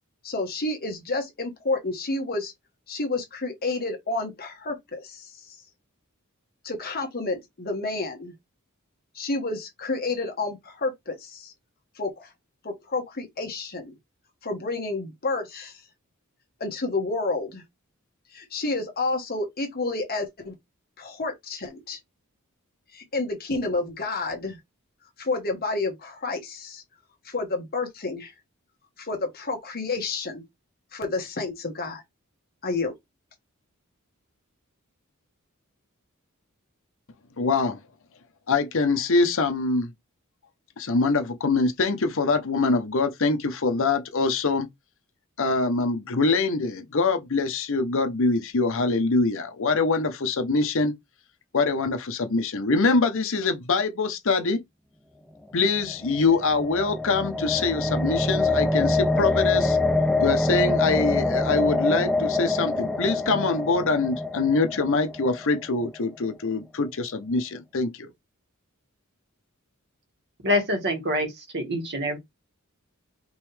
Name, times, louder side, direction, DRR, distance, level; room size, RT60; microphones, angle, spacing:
voice 1, 0.2-2.5 2.9-5.6 6.6-8.3 9.1-11.5 12.0-12.3 12.6-13.9 14.4-15.8 16.6-17.6 18.3-20.5 21.0-22.0 22.9-24.6 25.2-26.8 27.2-28.3 29.0-30.4 30.9-32.0 32.6-32.9, left 3 dB, 45° left, 1.3 m, -30 dB
voice 2, 37.4-37.8 38.5-39.9 40.8-44.7 45.4-50.9 51.5-54.6 55.5-59.8 60.2-68.1, left 3 dB, 65° left, 0.8 m, -24 dB
sound 1, 55.6-65.8, left 2 dB, ahead, 0.4 m, -25 dB
voice 3, 70.4-72.2, left 1 dB, 55° right, 1.8 m, -26 dB
5.3 x 3.0 x 3.3 m
head